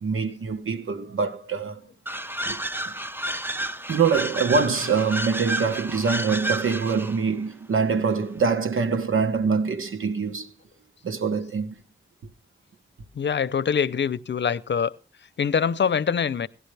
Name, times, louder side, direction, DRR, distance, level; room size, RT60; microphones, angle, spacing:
voice 1, 0.0-1.8 2.5-2.6 2.9-3.0 3.9-10.5 11.0-11.7, right 5 dB, 85° right, 1.3 m, -24 dB
sound 1, 2.1-7.2, right 1 dB, 10° right, 0.7 m, -31 dB
voice 2, 13.1-15.0 15.4-16.5, left 7 dB, 60° left, 0.7 m, -24 dB
17.0 x 11.0 x 3.4 m
wide cardioid pair, 95°, 21 cm